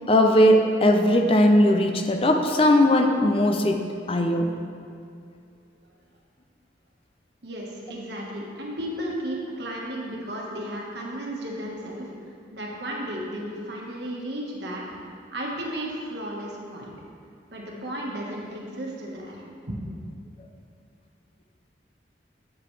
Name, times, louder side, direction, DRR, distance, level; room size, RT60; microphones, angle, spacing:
voice 1, 0.1-3.8 4.1-4.5, left 1 dB, 30° left, 4 dB, 0.5 m, -19 dB
voice 2, 7.4-15.0 15.3-17.0 17.5-19.4 19.7-19.8, right 1 dB, 70° right, -3 dB, 1.4 m, -34 dB
9.7 x 6.7 x 3.3 m, 2.3 s
head